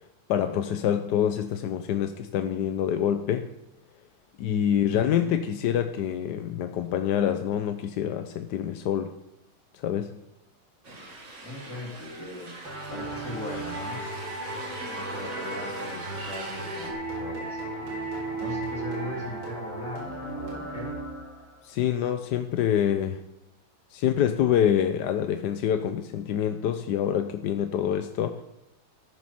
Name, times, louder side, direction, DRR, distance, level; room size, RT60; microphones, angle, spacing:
voice 1, 0.3-3.5 4.4-9.1 9.8-10.1 21.6-23.2 23.9-28.4, left 9 dB, 70° left, 8 dB, 1.1 m, -26 dB
voice 2, 4.9-5.8 10.8-11.0 11.4-12.5 12.9-14.1 14.8-21.0, left 1 dB, 35° left, -3 dB, 4.0 m, -40 dB
sound 1, 10.8-16.9, right 2 dB, 35° right, 2.0 m, -41 dB
sound 2, 12.7-21.6, right 2 dB, 80° right, 5.4 m, -35 dB
13.5 x 9.6 x 5.7 m, 0.86 s
omnidirectional pair, 2.4 m